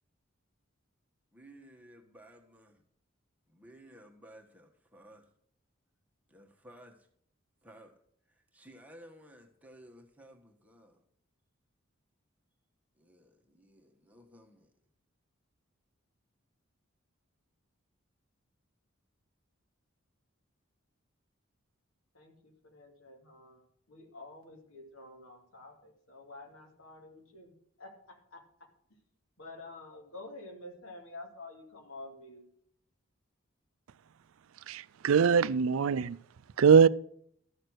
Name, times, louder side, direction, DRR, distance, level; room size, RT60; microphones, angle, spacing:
voice 1, 1.3-2.8 3.5-5.3 6.3-7.1 7.6-8.0 8.3-11.0 13.0-14.7, right 1 dB, 5° right, 1.4 m, -56 dB
voice 2, 22.1-27.5 27.8-28.4 28.9-29.0 29.4-32.5, left 2 dB, 80° left, 2.6 m, -49 dB
voice 3, 34.7-36.2 36.6-36.9, right 6 dB, 85° right, 0.4 m, -22 dB
13.0 x 6.6 x 6.3 m
head